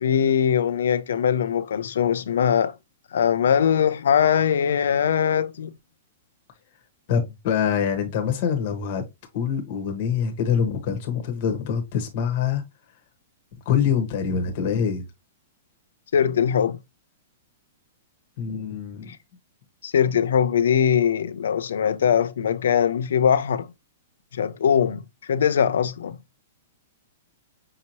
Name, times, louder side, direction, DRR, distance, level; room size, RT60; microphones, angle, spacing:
voice 1, 0.0-2.7 3.1-5.7 16.1-16.8 19.8-23.7 24.3-25.0 25.3-26.2, left 8 dB, 85° left, 0.6 m, -21 dB
voice 2, 7.1-9.0 9.3-12.6 13.6-15.1 18.4-19.1, left 7 dB, 40° left, 1.2 m, -25 dB
5.8 x 2.9 x 2.9 m
hypercardioid pair, 170°, 0 cm